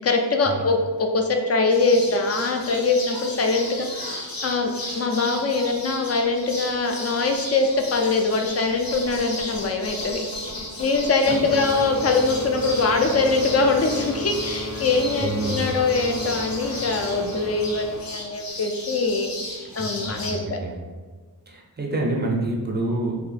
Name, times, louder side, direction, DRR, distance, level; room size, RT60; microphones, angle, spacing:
voice 1, 0.0-10.2 10.8-19.3 19.7-20.6, left 3 dB, 35° left, 4 dB, 0.4 m, -23 dB
sound 1, 1.7-20.3, left 2 dB, 55° left, 0.8 m, -35 dB
sound 2, 6.8-6.9 7.1-18.0 19.4-19.5, left 1 dB, 70° left, 1.4 m, -35 dB
voice 2, 15.2-15.6 19.8-20.7 21.5-23.2, right 2 dB, 25° right, 0 dB, 0.5 m, -27 dB
3.0 x 2.7 x 4.0 m, 1.4 s
wide cardioid pair, 145°, 43 cm